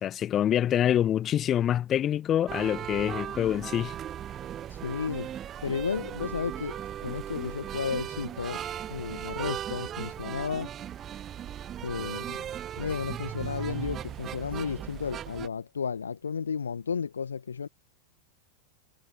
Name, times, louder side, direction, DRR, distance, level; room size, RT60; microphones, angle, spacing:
voice 1, 0.0-4.0, left 10 dB, 30° left, 1.7 m, -26 dB
sound 1, 2.5-15.5, right 10 dB, 25° right, 0.9 m, -37 dB
voice 2, 4.7-5.3 5.6-10.7 11.8-12.5 12.8-17.7, left 6 dB, 70° left, 1.2 m, -33 dB
figure-of-eight pair, 90°, 0 cm